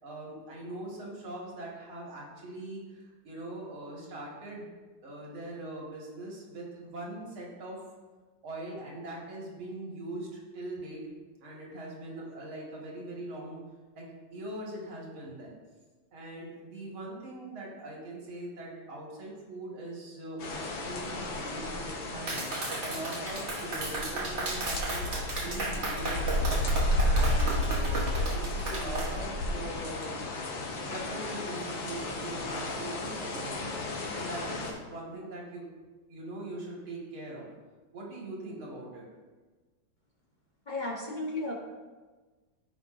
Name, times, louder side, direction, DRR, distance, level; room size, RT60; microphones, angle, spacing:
voice 1, 0.0-4.7 5.0-7.8 8.4-11.1 11.4-13.6 14.0-15.5 16.1-22.4 22.8-30.2 30.8-35.7 36.1-37.5 37.9-39.1, right 1 dB, 80° right, -3 dB, 2.8 m, -41 dB
sound 1, 20.4-34.7, left 1 dB, 75° left, 1.9 m, -32 dB
Clapping, 22.3-29.1, right 2 dB, 40° right, 1.2 m, -35 dB
voice 2, 40.7-41.5, left 2 dB, 35° left, -2 dB, 0.8 m, -34 dB
15.0 x 5.3 x 2.6 m, 1.3 s
omnidirectional pair, 2.3 m